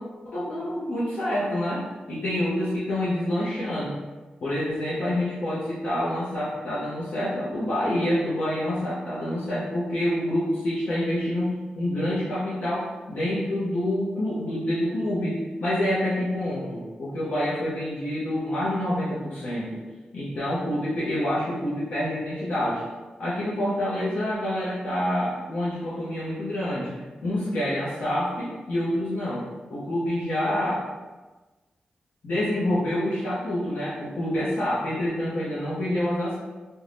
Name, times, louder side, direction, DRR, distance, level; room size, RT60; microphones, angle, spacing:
voice 1, 0.2-1.8 2.1-4.0 4.4-19.8 20.1-22.8 23.2-26.9 27.2-30.8 32.2-36.4, left 1 dB, 60° left, -10 dB, 0.7 m, -27 dB
2.5 x 2.2 x 3.3 m, 1.2 s
wide cardioid pair, 130°, 3 cm